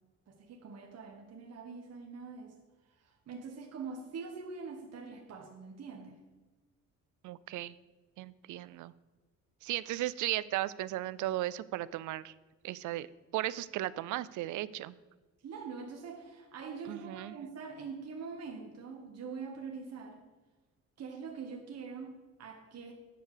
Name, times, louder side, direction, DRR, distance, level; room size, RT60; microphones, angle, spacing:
voice 1, 0.3-2.6 3.0-6.2 15.4-20.2 21.0-22.9, right 5 dB, 55° right, 1 dB, 1.3 m, -44 dB
voice 2, 7.2-7.7 8.2-8.9 9.6-12.3 12.6-13.1 13.3-14.9 16.9-17.4, right 15 dB, 80° right, 18 dB, 0.4 m, -36 dB
9.1 x 4.8 x 6.6 m, 1.2 s
cardioid pair, 90°, 30 cm